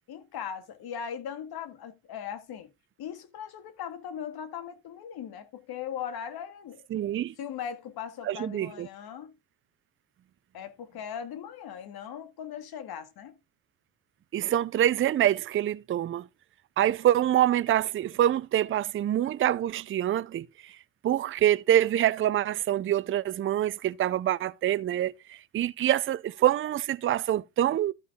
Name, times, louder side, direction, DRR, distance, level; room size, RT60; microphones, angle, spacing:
voice 1, 0.1-2.7 3.0-6.9 7.4-9.4 10.5-13.4, left 8 dB, 65° left, 2.0 m, -39 dB
voice 2, 6.9-7.3 8.2-8.9 14.3-16.3 16.8-20.7 21.0-27.9, right 12 dB, 30° right, 0.5 m, -26 dB
13.5 x 5.3 x 3.6 m
cardioid pair, 95°, 41 cm